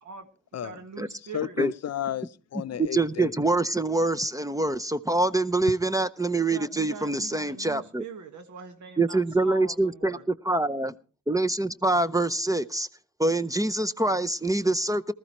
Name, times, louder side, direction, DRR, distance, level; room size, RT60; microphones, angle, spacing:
voice 1, 0.0-1.6 6.5-10.3, right 5 dB, 80° right, 1.6 m, -42 dB
voice 2, 1.3-3.3, left 10 dB, 60° left, 0.6 m, -32 dB
voice 3, 2.8-8.0 9.0-10.9 11.3-12.9 13.2-15.1, right 2 dB, 10° right, 0.6 m, -25 dB
19.5 x 13.5 x 3.0 m
cardioid pair, 90°, 29 cm